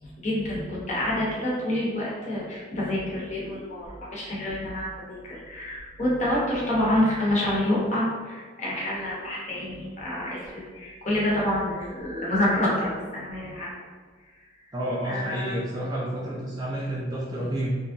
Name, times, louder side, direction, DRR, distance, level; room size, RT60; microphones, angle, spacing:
voice 1, 0.0-13.7 15.0-15.5, left 1 dB, 35° left, -5 dB, 0.7 m, -27 dB
voice 2, 14.7-17.7, right 1 dB, 20° right, -5 dB, 0.3 m, -30 dB
2.9 x 2.6 x 2.5 m, 1.5 s
head